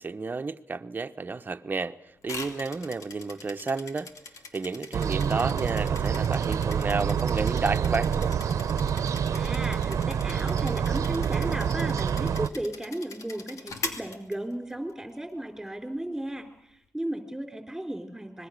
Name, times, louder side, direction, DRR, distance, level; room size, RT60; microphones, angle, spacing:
voice 1, 0.0-2.0 2.2-4.1 4.5-8.1, right 4 dB, 35° right, 1.0 m, -31 dB
sound 1, 2.2-14.9, left 4 dB, 85° left, 2.7 m, -42 dB
sound 2, 4.9-12.5, right 7 dB, 85° right, 1.0 m, -27 dB
voice 2, 9.3-18.5, right 1 dB, 5° right, 4.1 m, -35 dB
25.5 x 21.5 x 6.7 m
wide cardioid pair, 95°, 5 cm